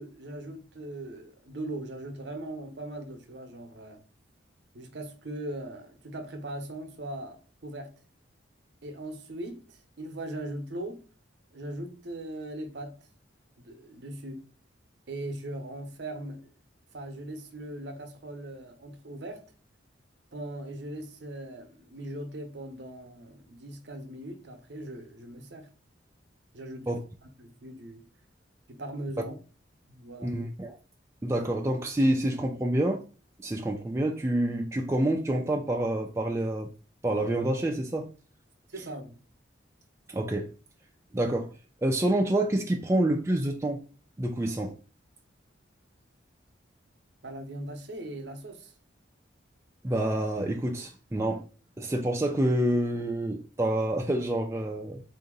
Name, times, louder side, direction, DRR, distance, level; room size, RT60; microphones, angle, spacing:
voice 1, 0.0-4.0 4.7-7.9 8.8-11.1 11.5-13.0 13.6-14.5 15.1-16.5 16.9-19.4 20.3-25.7 26.5-26.9 27.2-28.1 28.7-29.4 29.9-30.4 38.7-39.2 47.2-48.7, right 1 dB, 60° right, 0.7 m, -39 dB
voice 2, 30.2-30.8 31.2-33.0 33.4-36.7 37.0-38.1 40.1-40.5 41.1-41.5 41.8-43.8 44.2-44.7 49.8-51.5 51.8-55.0, right 1 dB, 15° right, 0.3 m, -27 dB
3.8 x 2.8 x 3.6 m
head